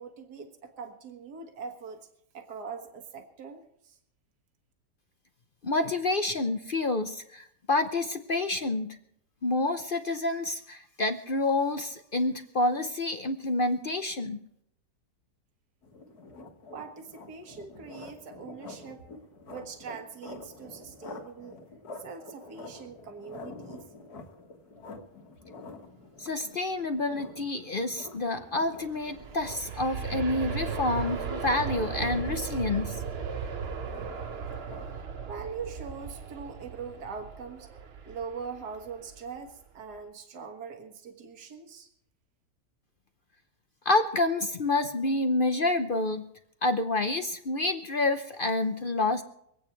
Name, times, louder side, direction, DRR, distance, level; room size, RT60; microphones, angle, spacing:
voice 1, 0.0-2.1 2.3-4.0 16.7-19.0 19.5-21.6 22.0-23.9 35.3-41.9, right 5 dB, 70° right, 5 dB, 2.0 m, -42 dB
voice 2, 5.6-9.0 9.4-14.4 26.2-33.0 43.9-46.2 46.6-49.2, left 2 dB, 45° left, 8 dB, 0.7 m, -28 dB
sound 1, 15.8-34.9, left 3 dB, 65° left, 2.1 m, -48 dB
Aircraft, 28.7-39.5 39.9-40.0, right 6 dB, 45° right, 1.0 m, -37 dB
24.5 x 8.8 x 4.5 m, 0.74 s
omnidirectional pair, 1.8 m